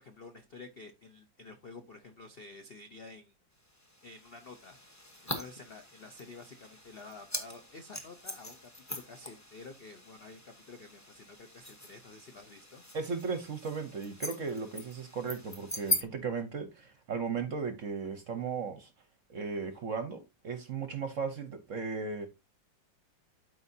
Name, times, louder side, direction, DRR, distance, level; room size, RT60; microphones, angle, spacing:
voice 1, 0.0-3.3 4.0-4.8 5.2-12.8, left 3 dB, 60° left, 0.6 m, -50 dB
sound 1, 3.6-16.0, equal, 10° left, 0.8 m, -41 dB
voice 2, 12.9-18.9 19.3-22.3, right 5 dB, 55° right, 0.9 m, -36 dB
12.0 x 4.7 x 2.7 m
omnidirectional pair, 2.1 m